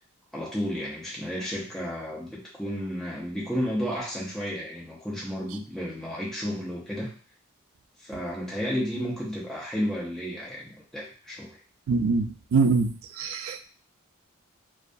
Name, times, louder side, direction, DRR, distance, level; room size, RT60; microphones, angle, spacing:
voice 1, 0.3-7.1 8.0-10.7 10.9-11.6, equal, ahead, -5 dB, 0.5 m, -32 dB
voice 2, 11.9-13.6, right 4 dB, 85° right, 8 dB, 0.3 m, -24 dB
2.3 x 2.2 x 2.5 m, 0.40 s
head